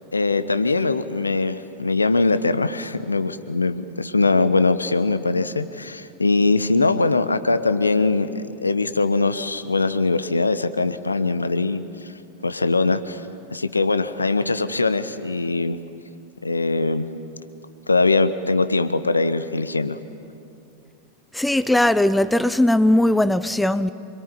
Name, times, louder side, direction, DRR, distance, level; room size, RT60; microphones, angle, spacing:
voice 1, 0.1-12.1 12.4-13.2 13.5-15.8 16.4-17.1 17.9-20.0, left 3 dB, 80° left, 1.1 m, -21 dB
voice 2, 21.3-23.9, left 1 dB, 5° left, 0.8 m, -19 dB
27.0 x 22.0 x 9.9 m
figure-of-eight pair, 90°, 0 cm